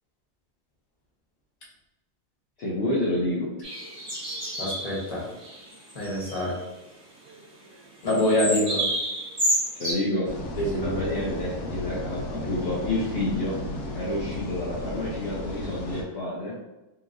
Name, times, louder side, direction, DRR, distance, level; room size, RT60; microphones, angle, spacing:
voice 1, 2.6-3.5 9.7-10.3 10.8-13.6 13.9-16.5, left 1 dB, 55° left, -5 dB, 0.8 m, -29 dB
sound 1, 3.6-5.0 5.4-5.6 5.9-6.6 8.1-9.9, right 1 dB, 30° right, 0.9 m, -29 dB
voice 2, 4.6-5.3 5.9-6.6 8.0-8.9 10.6-11.0, left 1 dB, 30° left, -6 dB, 1.0 m, -25 dB
sound 2, 10.2-16.0, left 1 dB, 90° left, 1.1 m, -34 dB
2.9 x 2.8 x 2.5 m, 0.98 s
omnidirectional pair, 1.6 m